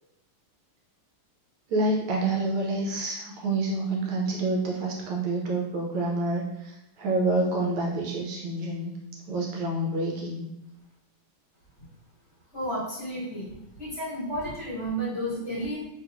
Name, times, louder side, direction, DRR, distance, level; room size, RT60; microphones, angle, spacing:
voice 1, 1.7-8.9 9.3-10.5, right 2 dB, 75° right, -1 dB, 1.3 m, -28 dB
voice 2, 12.5-15.8, right 1 dB, 35° left, -11 dB, 1.7 m, -32 dB
3.5 x 2.9 x 2.4 m, 0.87 s
omnidirectional pair, 2.4 m